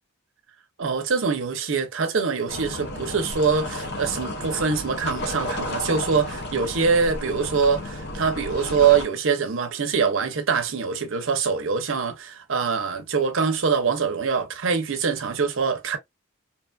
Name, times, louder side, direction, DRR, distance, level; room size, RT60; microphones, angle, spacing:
voice 1, 0.8-16.0, right 5 dB, 70° right, 0.6 m, -24 dB
sound 1, 2.5-9.0, left 1 dB, 50° left, 0.6 m, -33 dB
2.8 x 2.4 x 2.3 m
head